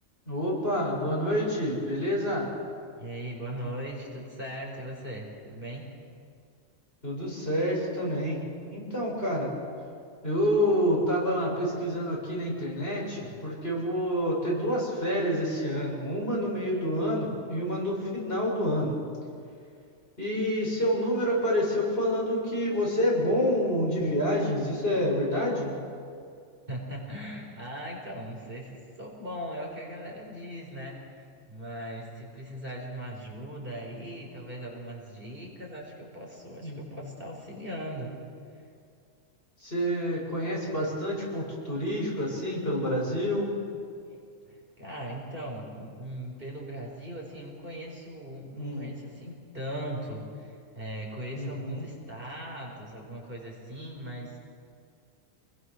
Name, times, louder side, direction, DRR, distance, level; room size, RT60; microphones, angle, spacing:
voice 1, 0.3-2.5 7.0-9.5 10.2-19.0 20.2-25.7 36.6-37.0 39.6-43.5 48.5-48.9 51.3-51.9, equal, 45° left, -4 dB, 7.3 m, -28 dB
voice 2, 2.9-5.9 26.7-38.1 38.5-38.6 44.1-54.5, right 1 dB, 40° right, -2 dB, 5.1 m, -39 dB
29.0 x 21.5 x 6.5 m, 2.3 s
omnidirectional pair, 1.4 m